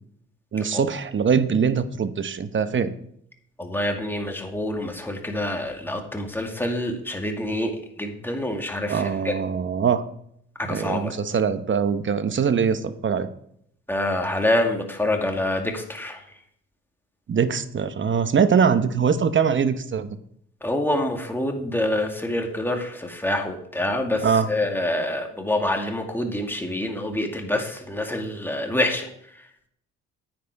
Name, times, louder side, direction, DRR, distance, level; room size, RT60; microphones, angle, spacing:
voice 1, 0.5-2.9 8.9-10.0 10.6-13.3 17.3-20.2 24.2-24.5, right 6 dB, 40° right, 12 dB, 0.9 m, -22 dB
voice 2, 3.6-7.7 8.0-9.3 10.6-11.1 13.9-16.2 20.6-29.1, left 1 dB, 5° left, 2 dB, 2.1 m, -26 dB
9.7 x 9.3 x 4.7 m, 0.70 s
cardioid pair, 90°, 30 cm